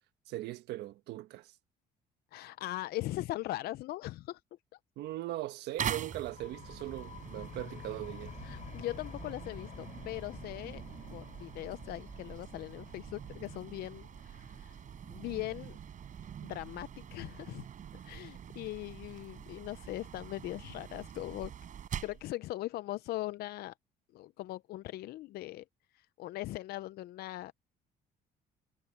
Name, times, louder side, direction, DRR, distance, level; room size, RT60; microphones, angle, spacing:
voice 1, 0.3-1.5 5.0-8.4, right 15 dB, 80° right, 1.3 m, -40 dB
voice 2, 2.3-4.4 8.4-10.8 11.1-14.8 15.1-15.8 16.4-17.7 18.0-21.5 22.0-23.7 24.1-25.6 25.9-27.5, left 16 dB, 70° left, 0.5 m, -40 dB
sound 1, 5.8-22.3, right 9 dB, 50° right, 4.6 m, -44 dB
sound 2, 6.0-17.4, left 8 dB, 45° left, 5.3 m, -51 dB
cardioid pair, 110°, 17 cm